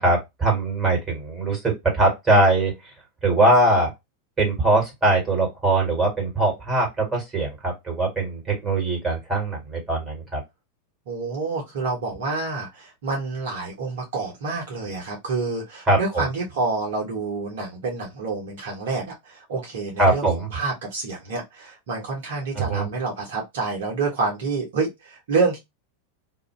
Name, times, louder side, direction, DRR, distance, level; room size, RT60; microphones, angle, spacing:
voice 1, 0.0-2.7 3.2-3.9 4.4-10.4 15.9-16.2 20.0-20.5 22.5-22.9, right 2 dB, 15° right, 1.5 m, -21 dB
voice 2, 11.1-20.3 20.5-25.6, right 4 dB, 55° right, 0.9 m, -28 dB
2.5 x 2.1 x 3.1 m
figure-of-eight pair, 90°, 0 cm